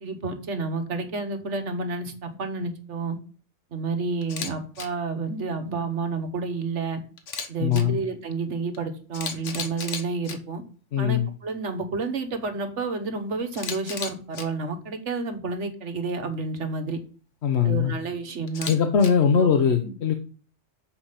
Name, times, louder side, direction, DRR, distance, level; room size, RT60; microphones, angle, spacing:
voice 1, 0.0-3.2 3.7-7.0 7.5-10.6 11.0-17.0 17.6-18.7 19.4-19.5 19.8-19.9, right 3 dB, 75° right, 6 dB, 1.5 m, -30 dB
Camera, 4.2-4.5 4.8-4.9 7.2-7.8 8.7-8.8 9.1-10.4 13.5-14.4 18.5-19.1, left 5 dB, 85° left, 1.5 m, -33 dB
voice 2, 7.6-8.0 10.9-11.3 17.4-17.9 18.7-20.1, left 7 dB, 65° left, 6 dB, 1.1 m, -21 dB
7.2 x 5.1 x 5.7 m, 0.40 s
omnidirectional pair, 1.2 m